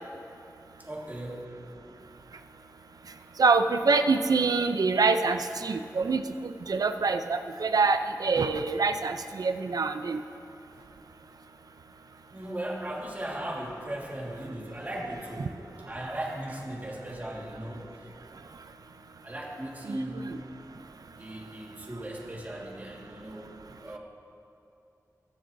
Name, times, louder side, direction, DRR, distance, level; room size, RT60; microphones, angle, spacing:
voice 1, 0.8-1.4 12.3-15.5 15.9-17.9 19.2-20.4 21.2-23.5 23.8-24.0, right 1 dB, 25° right, -3 dB, 1.8 m, -37 dB
voice 2, 3.4-10.2 19.9-20.0 20.3-20.4, right 4 dB, 75° right, 9 dB, 0.5 m, -25 dB
21.0 x 7.6 x 2.7 m, 2.6 s
wide cardioid pair, 85°, 6 cm